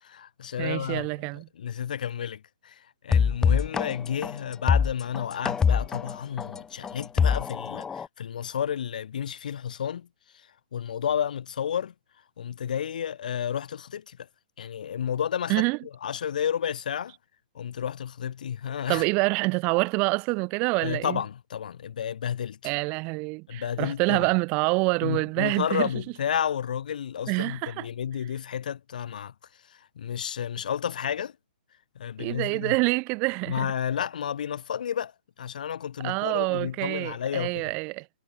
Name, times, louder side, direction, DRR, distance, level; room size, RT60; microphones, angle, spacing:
voice 1, 0.0-1.1 1.3-10.1 10.3-11.9 12.4-14.2 14.6-15.6 16.0-17.1 17.5-19.0 20.8-22.7 23.5-24.2 25.0-29.3 29.7-31.4 31.9-32.8 33.5-35.1 35.4-37.7, left 8 dB, 65° left, 3.0 m, -31 dB
voice 2, 0.6-1.5 15.5-15.8 18.9-21.2 22.6-25.9 27.3-27.9 32.2-33.7 36.0-38.1, right 29 dB, 30° right, 1.6 m, -26 dB
sound 1, 3.1-8.1, left 6 dB, 10° left, 0.5 m, -24 dB
hypercardioid pair, 135°, 5 cm